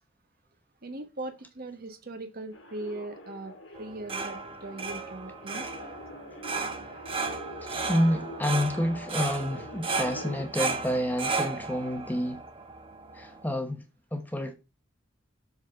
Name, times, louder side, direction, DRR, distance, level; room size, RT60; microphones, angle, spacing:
voice 1, 0.8-5.7, right 2 dB, 50° right, 1.1 m, -40 dB
sound 1, 2.5-10.5, left 1 dB, 85° left, 2.5 m, -45 dB
sound 2, 3.7-13.5, right 4 dB, 25° right, 1.1 m, -34 dB
voice 2, 7.6-12.4 13.1-13.8 14.1-14.5, equal, 10° left, 1.0 m, -29 dB
7.8 x 4.0 x 5.9 m
head